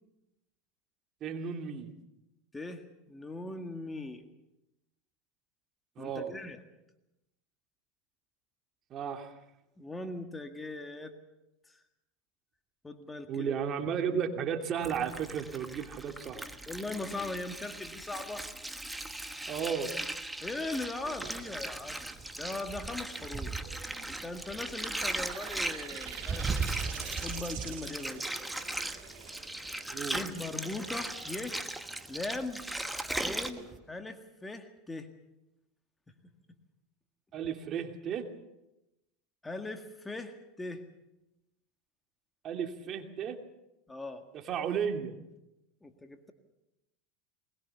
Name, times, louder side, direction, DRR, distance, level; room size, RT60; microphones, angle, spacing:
voice 1, 1.2-1.9 6.0-6.3 8.9-9.3 13.3-16.5 19.5-19.9 29.9-30.2 37.3-38.3 42.4-43.4 44.3-45.2, right 7 dB, 40° right, 5 dB, 2.7 m, -34 dB
voice 2, 2.5-4.2 6.0-6.6 9.8-11.1 11.7-11.8 12.8-13.6 14.1-14.2 16.7-18.5 20.4-22.1 22.4-23.5 24.1-26.6 27.2-28.3 30.1-31.6 32.1-32.6 33.1-35.1 36.1-36.3 39.4-40.8 43.9-44.2 45.8-46.3, left 2 dB, 15° left, 6 dB, 1.9 m, -40 dB
Water, 14.8-33.5, right 1 dB, 5° right, 1.3 m, -39 dB
sound 1, 21.1-33.8, right 5 dB, 25° right, 4.9 m, -42 dB
sound 2, 25.0-32.3, right 14 dB, 70° right, 2.1 m, -46 dB
21.0 x 20.5 x 6.9 m, 0.93 s
hypercardioid pair, 105°, 0 cm